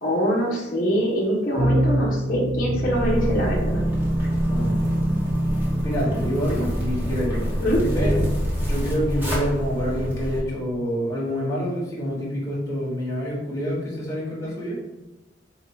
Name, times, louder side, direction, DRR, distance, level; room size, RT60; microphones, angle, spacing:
voice 1, 0.0-3.8 7.6-7.8, equal, 50° left, -5 dB, 1.0 m, -23 dB
sound 1, 1.6-8.2, right 1 dB, 40° right, 0.6 m, -25 dB
Zipper (clothing), 2.9-10.4, equal, 10° right, 1.1 m, -28 dB
voice 2, 4.5-4.9 5.8-7.5 7.9-8.2 8.6-14.8, equal, 15° left, -7 dB, 1.3 m, -27 dB
4.0 x 2.8 x 4.6 m, 1.0 s
head